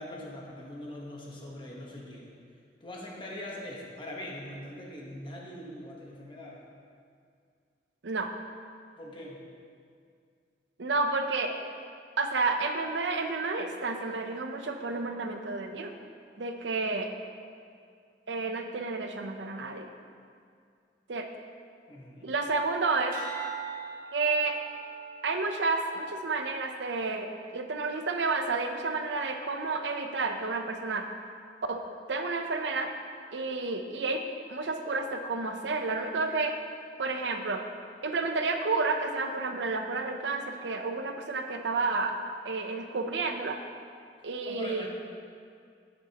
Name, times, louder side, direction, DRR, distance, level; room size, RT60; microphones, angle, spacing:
voice 1, 0.0-2.3 2.8-6.6 9.0-9.4 21.9-22.3 44.4-44.9, left 1 dB, 30° left, -3 dB, 1.2 m, -42 dB
voice 2, 10.8-11.5 12.2-15.9 16.4-17.1 18.3-19.9 21.1-21.3 22.2-23.2 24.1-24.6 25.2-31.1 31.7-31.8 32.1-32.9 33.3-34.2 34.5-36.5 37.0-37.6 38.0-42.2 42.4-43.6 44.2-44.9, right 3 dB, 80° right, 5 dB, 0.7 m, -30 dB
sound 1, 23.1-27.6 28.1-28.5, right 6 dB, 55° right, 2.0 m, -43 dB
9.8 x 9.7 x 2.9 m, 2.2 s
head